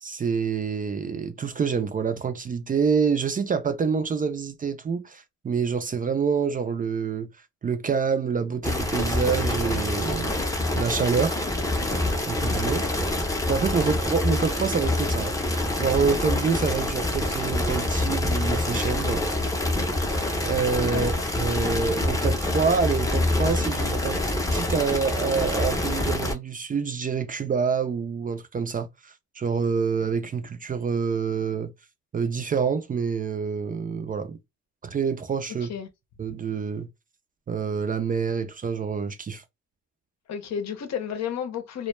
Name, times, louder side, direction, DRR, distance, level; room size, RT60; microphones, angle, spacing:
voice 1, 0.0-7.3 7.6-10.3 10.7-11.4 12.3-12.9 13.5-19.2 20.4-24.2 24.5-31.7 32.1-34.4 34.8-35.7 36.2-36.9 37.5-39.4, right 5 dB, 30° right, 0.4 m, -27 dB
sound 1, 8.6-26.3, left 1 dB, 10° left, 0.6 m, -26 dB
voice 2, 40.3-41.9, left 8 dB, 60° left, 0.7 m, -31 dB
2.2 x 2.1 x 3.0 m
cardioid pair, 90°, 30 cm